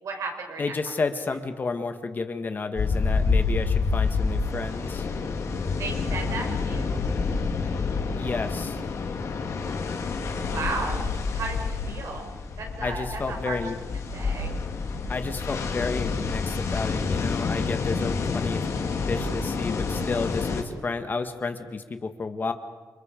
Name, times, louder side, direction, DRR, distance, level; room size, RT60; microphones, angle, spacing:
voice 1, 0.0-0.7 5.8-7.0 10.4-11.0 11.3-12.2 12.6-14.5, right 3 dB, 60° right, 2 dB, 5.3 m, -34 dB
voice 2, 0.6-5.1 8.2-8.8 12.8-13.8 15.1-18.6 19.1-22.5, left 4 dB, 30° left, 7 dB, 1.5 m, -31 dB
sound 1, 2.8-20.6, left 4 dB, 50° left, 2.6 m, -28 dB
29.0 x 27.0 x 5.2 m, 1.3 s
wide cardioid pair, 165°, 6 cm